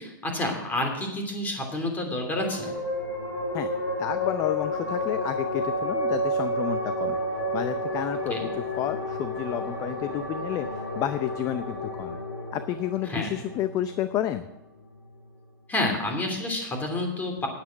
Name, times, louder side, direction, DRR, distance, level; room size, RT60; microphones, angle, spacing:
voice 1, 0.0-2.7 8.3-8.4 13.1-13.3 15.7-17.5, left 1 dB, 15° left, 3 dB, 3.0 m, -29 dB
sound 1, 2.3-15.2, left 1 dB, 80° left, 4.4 m, -31 dB
voice 2, 4.0-7.2 7.5-8.4 8.8-12.2 12.5-14.4, left 11 dB, 30° left, 11 dB, 0.6 m, -30 dB
10.0 x 9.2 x 6.3 m, 0.93 s
hypercardioid pair, 135°, 11 cm